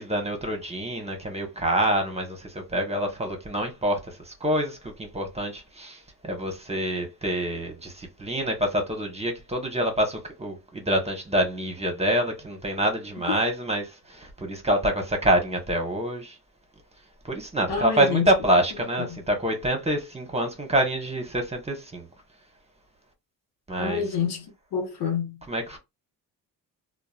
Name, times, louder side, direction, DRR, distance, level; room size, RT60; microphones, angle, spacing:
voice 1, 0.0-16.4 17.2-22.1 23.7-24.0 25.5-25.8, right 1 dB, 15° right, 1.0 m, -26 dB
voice 2, 17.7-18.3 19.1-19.2 23.8-25.4, left 6 dB, 75° left, 1.0 m, -28 dB
2.9 x 2.3 x 2.3 m
supercardioid pair, 70°, 40 cm